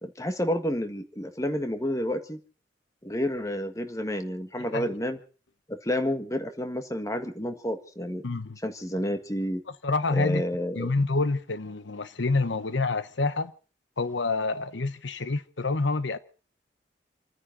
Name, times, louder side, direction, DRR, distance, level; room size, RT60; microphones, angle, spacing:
voice 1, 0.0-2.4 3.0-5.2 5.7-8.2 8.6-9.6 10.1-10.9, equal, 15° left, 1.7 m, -30 dB
voice 2, 4.6-4.9 8.2-8.6 9.8-10.4 10.7-13.5 14.0-16.2, left 3 dB, 85° left, 1.0 m, -27 dB
28.5 x 10.0 x 5.1 m
head